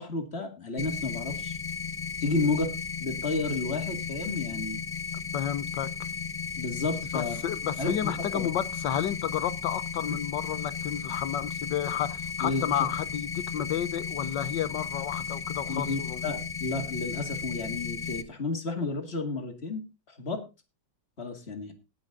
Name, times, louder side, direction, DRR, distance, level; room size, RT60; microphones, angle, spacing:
voice 1, 0.0-1.6 2.2-2.7 3.0-4.8 6.6-7.4 7.8-8.5 10.1-10.2 12.4-12.7 15.7-20.4 21.2-21.7, left 3 dB, 35° left, 2.4 m, -32 dB
sound 1, 0.8-18.2, left 6 dB, 55° left, 0.3 m, -35 dB
voice 2, 5.3-5.9 7.1-16.2, left 10 dB, 70° left, 1.5 m, -31 dB
18.5 x 6.3 x 3.8 m
omnidirectional pair, 2.0 m